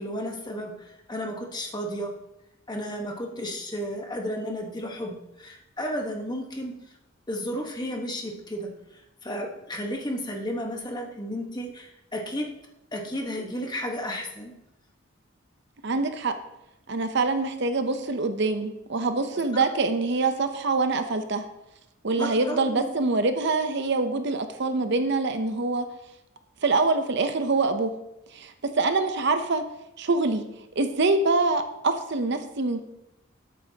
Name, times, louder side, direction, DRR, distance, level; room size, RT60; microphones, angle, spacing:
voice 1, 0.0-2.1 2.7-6.7 7.3-8.7 9.2-12.5 12.9-14.5 19.5-19.6 22.2-22.9, equal, 20° left, 1 dB, 1.2 m, -33 dB
voice 2, 15.8-16.3 16.9-21.4 22.0-25.9 26.6-27.9 28.3-29.6 30.0-30.4 30.8-32.8, right 3 dB, 55° right, 8 dB, 0.7 m, -25 dB
12.5 x 8.5 x 2.9 m, 0.87 s
head